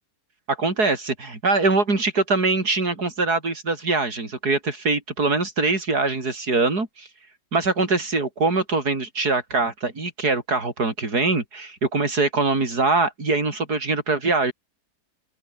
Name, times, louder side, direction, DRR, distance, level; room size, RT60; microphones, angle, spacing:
voice 1, 0.5-7.1 7.5-14.5, right 3 dB, 65° right, 5.2 m, -23 dB
open air
omnidirectional pair, 1.8 m